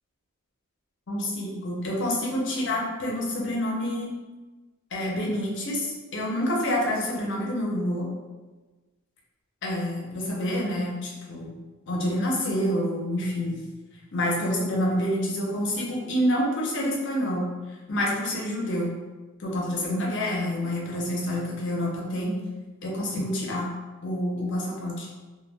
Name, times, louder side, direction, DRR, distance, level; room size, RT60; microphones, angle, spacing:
voice 1, 1.1-4.1 4.9-8.1 9.6-11.5 11.9-13.6 14.1-17.5 17.9-19.0 19.4-22.3 22.8-23.7 24.0-25.1, left 1 dB, 55° left, -3 dB, 0.6 m, -27 dB
2.2 x 2.1 x 3.3 m, 1.2 s
head